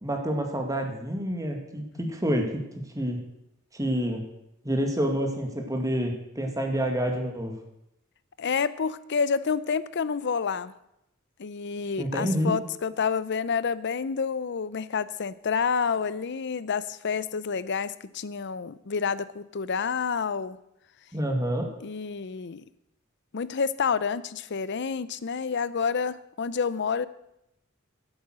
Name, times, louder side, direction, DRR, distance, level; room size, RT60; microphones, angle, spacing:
voice 1, 0.0-2.6 2.9-3.2 3.7-4.2 4.6-7.5 12.0-12.5 21.1-21.7, equal, 15° right, 3 dB, 2.0 m, -28 dB
voice 2, 8.4-10.7 11.4-20.6 21.8-22.6 23.3-27.1, left 6 dB, 55° left, 16 dB, 0.6 m, -29 dB
11.0 x 8.8 x 7.6 m, 0.83 s
head